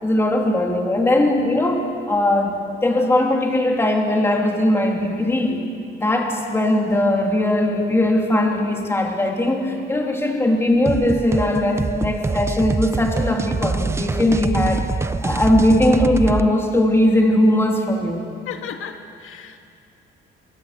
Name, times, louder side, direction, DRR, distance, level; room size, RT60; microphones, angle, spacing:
voice 1, 0.0-5.7 6.0-14.9 15.2-18.2, left 1 dB, 10° left, 1 dB, 3.0 m, -19 dB
sound 1, 10.8-16.5, right 4 dB, 15° right, 0.5 m, -24 dB
voice 2, 18.5-19.6, left 8 dB, 75° left, 5 dB, 1.8 m, -34 dB
26.0 x 25.0 x 8.3 m, 2.7 s
cardioid pair, 175°, 21 cm